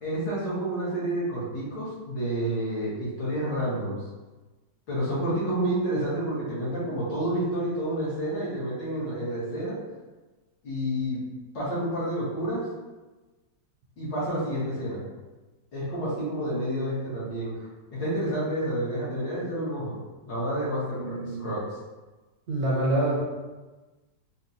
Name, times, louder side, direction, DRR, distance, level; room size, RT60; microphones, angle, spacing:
voice 1, 0.0-4.0 4.9-9.8 10.6-11.2 11.5-12.6 14.0-15.0 15.7-17.7 17.9-20.0 20.2-21.6, right 1 dB, 70° left, -9 dB, 2.0 m, -29 dB
voice 2, 20.9-21.5 22.5-23.2, right 1 dB, 65° right, -6 dB, 1.0 m, -26 dB
4.2 x 2.3 x 2.7 m, 1.2 s
omnidirectional pair, 2.1 m